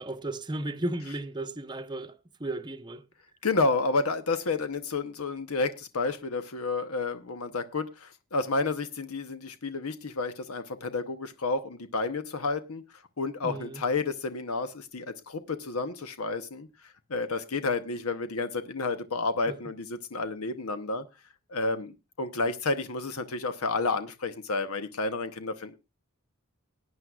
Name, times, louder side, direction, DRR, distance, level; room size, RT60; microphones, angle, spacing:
voice 1, 0.0-3.1 13.4-13.8 19.5-19.6, right 1 dB, 20° right, 0.7 m, -35 dB
voice 2, 3.4-12.8 13.2-16.7 17.1-21.0 21.5-25.8, left 3 dB, 85° left, 0.9 m, -30 dB
20.0 x 9.5 x 2.3 m
head